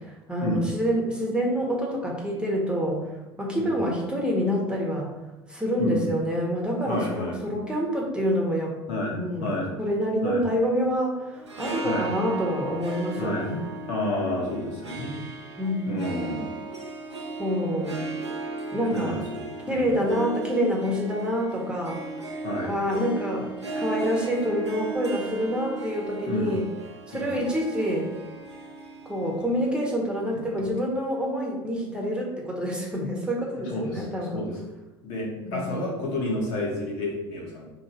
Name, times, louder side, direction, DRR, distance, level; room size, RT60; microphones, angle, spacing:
voice 1, 0.3-3.1 3.4-5.1 5.5-8.7 9.1-9.5 9.8-13.6 15.6-16.2 17.4-18.0 18.7-19.2 19.7-22.0 22.6-23.5 23.8-26.6 27.1-28.1 29.0-34.4 35.4-35.8, equal, 5° right, -2 dB, 1.3 m, -27 dB
voice 2, 6.9-7.3 8.9-9.6 10.2-10.4 11.8-12.0 13.2-13.5 13.8-15.1 15.9-16.6 18.9-20.0 22.4-22.7 26.2-26.5 27.1-27.3 33.7-34.1 34.3-34.6 35.0-37.7, left 1 dB, 60° left, -3 dB, 1.4 m, -30 dB
Harp, 11.3-30.7, right 3 dB, 90° right, 0.7 m, -37 dB
3.8 x 3.1 x 4.2 m, 1.1 s
figure-of-eight pair, 70°, 14 cm